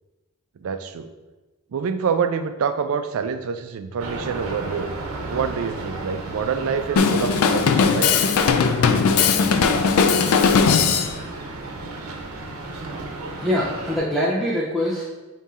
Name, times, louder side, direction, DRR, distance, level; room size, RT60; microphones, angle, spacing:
voice 1, 0.6-1.1 1.7-4.9 5.3-8.1 12.1-12.2, right 6 dB, 70° right, 9 dB, 0.4 m, -26 dB
sound 1, 4.0-14.0, right 2 dB, 90° right, 0.7 m, -33 dB
Drum kit, 7.0-11.1, left 5 dB, 75° left, 0.4 m, -18 dB
voice 2, 13.4-15.0, equal, ahead, -6 dB, 0.5 m, -23 dB
5.4 x 2.7 x 3.6 m, 1.2 s
head